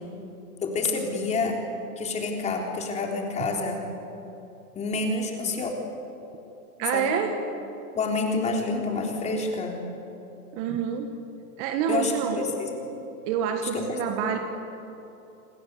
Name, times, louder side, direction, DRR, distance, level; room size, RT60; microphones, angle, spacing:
voice 1, 0.6-1.6 2.0-3.8 4.8-5.7 6.9-7.2 7.9-9.8 11.9-13.0 13.6-14.0, left 3 dB, 15° left, 1 dB, 3.6 m, -28 dB
voice 2, 6.8-7.3 10.5-11.1 11.6-12.5 13.3-14.4, right 8 dB, 30° right, 6 dB, 1.7 m, -27 dB
27.5 x 26.5 x 8.2 m, 3.0 s
hypercardioid pair, 155°, 47 cm